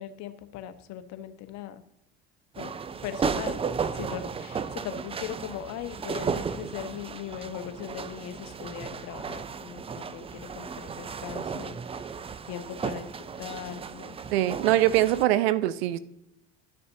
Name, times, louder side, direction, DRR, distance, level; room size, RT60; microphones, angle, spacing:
voice 1, 0.0-1.8 2.6-2.7 3.0-3.6 3.9-12.2 12.5-14.2, left 10 dB, 60° left, 10 dB, 0.9 m, -39 dB
sound 1, 2.5-15.2, right 6 dB, 20° right, 0.4 m, -34 dB
voice 2, 14.3-16.0, right 14 dB, 75° right, 15 dB, 0.6 m, -23 dB
12.0 x 6.8 x 2.7 m, 0.85 s
hypercardioid pair, 70°, 32 cm